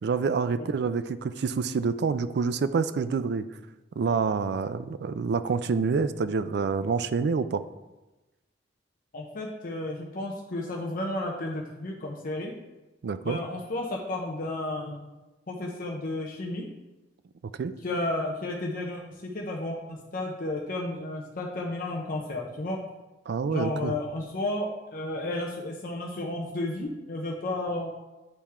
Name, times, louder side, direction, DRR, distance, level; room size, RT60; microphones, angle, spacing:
voice 1, 0.0-3.5 4.0-7.6 13.0-13.4 17.6-17.8 23.3-23.9, right 5 dB, 65° right, 13 dB, 0.4 m, -27 dB
voice 2, 9.1-12.5 13.2-15.0 15.5-16.6 17.8-22.8 23.5-27.9, left 2 dB, 50° left, -1 dB, 0.7 m, -32 dB
9.1 x 3.6 x 4.3 m, 1.1 s
head